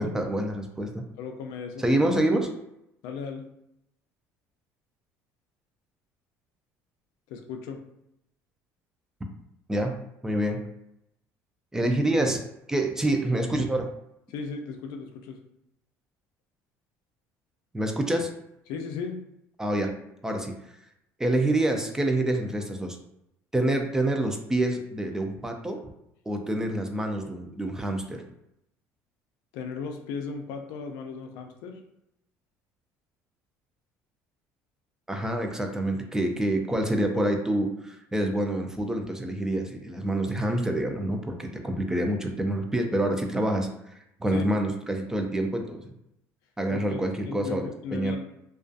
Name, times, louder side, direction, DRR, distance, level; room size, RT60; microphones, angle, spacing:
voice 1, 0.0-1.1 1.8-2.5 9.7-10.7 11.7-12.4 12.7-13.9 17.7-18.3 19.6-19.9 20.2-20.5 21.2-23.0 23.5-25.8 26.3-28.2 35.1-43.7 44.2-45.9 46.6-48.2, right 1 dB, 10° right, 4 dB, 0.3 m, -27 dB
voice 2, 1.2-2.0 3.0-3.5 7.3-7.8 14.3-15.4 18.7-19.2 29.5-31.8 44.3-44.5 46.7-48.2, left 5 dB, 80° left, 4 dB, 0.4 m, -36 dB
2.3 x 2.3 x 2.5 m, 0.80 s
cardioid pair, 125°, 6 cm